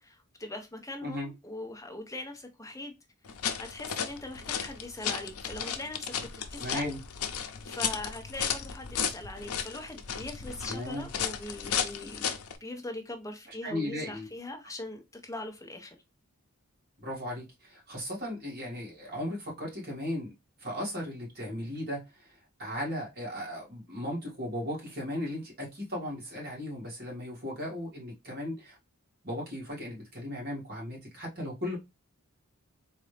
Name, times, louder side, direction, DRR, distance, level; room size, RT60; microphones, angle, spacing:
voice 1, 0.0-2.9 3.6-6.1 6.5-6.9 7.6-12.3 12.6-16.0, left 2 dB, 15° left, 0.7 m, -41 dB
sound 1, 3.3-12.6, left 7 dB, 90° left, 0.6 m, -34 dB
voice 2, 6.6-7.0 10.7-11.1 13.6-14.3 17.0-20.3 20.6-28.8 29.2-31.8, left 1 dB, 45° right, 2.1 m, -36 dB
3.9 x 2.7 x 3.2 m
head